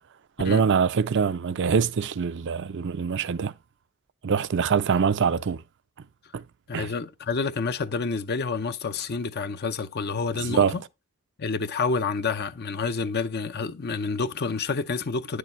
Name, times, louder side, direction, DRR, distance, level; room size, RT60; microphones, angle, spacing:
voice 1, 0.4-3.5 4.2-5.6 6.3-6.4 6.7-6.9 10.3-10.8, right 6 dB, 55° right, 0.5 m, -24 dB
voice 2, 6.7-10.8 11.4-15.4, left 4 dB, 50° left, 0.7 m, -28 dB
9.8 x 6.6 x 3.2 m
head